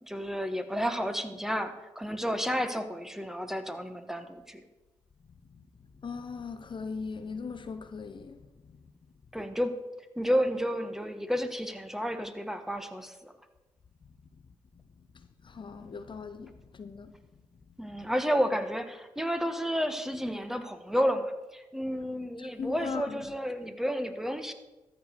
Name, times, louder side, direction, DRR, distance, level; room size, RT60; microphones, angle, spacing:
voice 1, 0.0-4.6 9.3-9.7 10.2-13.3 17.8-24.5, equal, 5° right, 1.3 m, -31 dB
voice 2, 6.0-8.4 15.4-17.1 22.4-23.2, left 5 dB, 45° left, 0.8 m, -39 dB
13.5 x 5.2 x 6.5 m
supercardioid pair, 45°, 11 cm